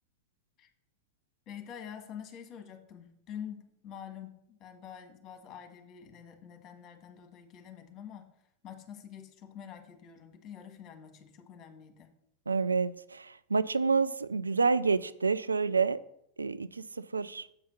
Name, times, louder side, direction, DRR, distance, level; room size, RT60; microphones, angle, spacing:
voice 1, 1.5-8.3 8.6-12.1, left 8 dB, 30° left, 5 dB, 1.4 m, -46 dB
voice 2, 12.5-16.0 16.4-17.5, right 4 dB, 80° right, 13 dB, 0.3 m, -28 dB
7.8 x 4.9 x 5.4 m, 0.76 s
figure-of-eight pair, 90°, 0 cm